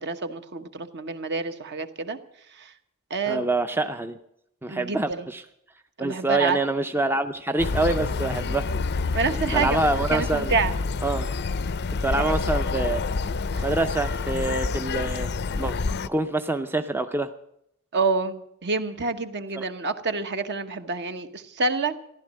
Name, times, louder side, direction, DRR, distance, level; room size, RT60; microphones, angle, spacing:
voice 1, 0.0-2.2 2.5-2.7 3.1-3.4 4.7-5.3 6.0-6.6 9.1-10.7 12.1-12.5 13.5-13.6 17.9-22.0, right 4 dB, 50° right, 9 dB, 1.1 m, -28 dB
voice 2, 3.3-4.2 4.6-5.4 6.0-8.7 9.5-10.5 11.0-11.3 12.0-13.0 13.6-15.3 15.6-15.8 16.0-17.3 19.6-19.7, right 2 dB, 10° right, 8 dB, 0.5 m, -26 dB
sound 1, 7.6-16.1, left 4 dB, 50° left, 0.5 m, -28 dB
14.5 x 11.5 x 7.5 m, 0.77 s
head